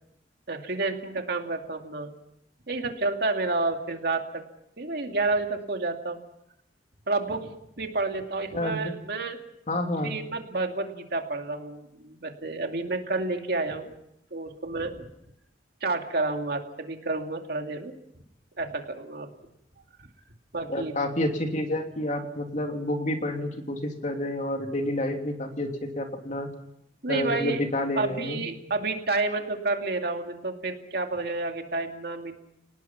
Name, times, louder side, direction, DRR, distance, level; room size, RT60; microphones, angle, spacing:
voice 1, 0.5-2.1 2.7-4.4 4.8-6.2 7.1-9.4 10.0-13.9 14.3-15.0 15.8-17.9 18.6-19.3 20.5-20.9 27.0-27.6 28.0-32.4, right 3 dB, 60° right, 4 dB, 2.5 m, -30 dB
voice 2, 8.5-8.9 9.7-10.2 20.7-26.5 27.1-28.4, left 1 dB, 45° left, 3 dB, 3.0 m, -29 dB
30.0 x 19.5 x 5.9 m, 0.80 s
head